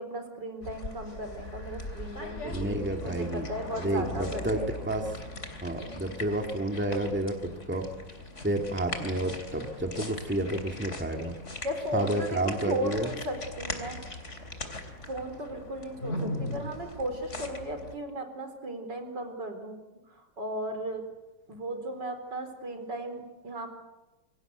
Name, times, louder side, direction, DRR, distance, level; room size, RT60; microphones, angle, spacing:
voice 1, 0.0-4.7 5.8-6.1 11.6-14.0 15.1-19.8 20.1-21.0 21.5-23.7, right 1 dB, 70° right, 7 dB, 4.8 m, -36 dB
sound 1, 0.6-17.9, left 2 dB, 40° left, 3.6 m, -39 dB
voice 2, 2.5-3.5 3.8-5.1 5.6-7.9 8.4-11.4 11.9-13.1, right 1 dB, 5° right, 4 dB, 2.2 m, -30 dB
29.0 x 24.0 x 8.2 m, 1.1 s
omnidirectional pair, 2.0 m